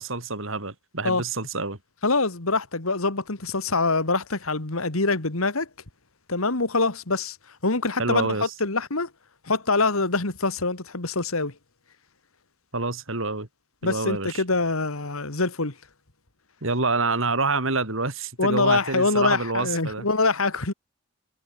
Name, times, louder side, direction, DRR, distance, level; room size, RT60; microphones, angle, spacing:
voice 1, 0.0-1.8 8.0-8.5 12.7-13.5 13.8-14.4 16.6-20.1, right 3 dB, 70° right, 3.2 m, -27 dB
voice 2, 2.0-5.7 6.3-7.4 7.6-9.1 9.4-11.5 13.8-15.7 18.4-20.7, left 3 dB, 80° left, 2.3 m, -24 dB
head